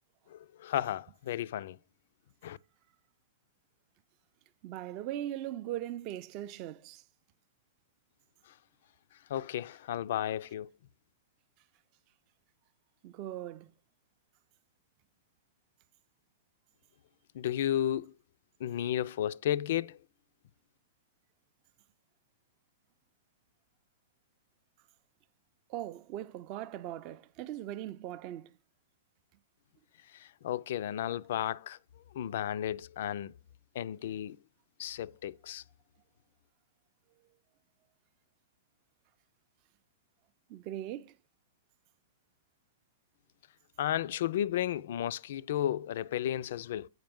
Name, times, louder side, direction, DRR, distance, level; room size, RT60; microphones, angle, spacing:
voice 1, 0.3-1.8 2.4-2.6 9.3-10.7 17.3-18.1 18.6-20.0 30.1-31.8 32.1-33.3 33.7-34.4 34.8-35.6 43.8-46.9, left 11 dB, 65° left, 0.3 m, -33 dB
voice 2, 4.6-7.0 13.0-13.7 25.7-28.5 40.5-41.1, right 13 dB, 40° right, 0.4 m, -39 dB
7.8 x 4.8 x 3.6 m
hypercardioid pair, 140°, 0 cm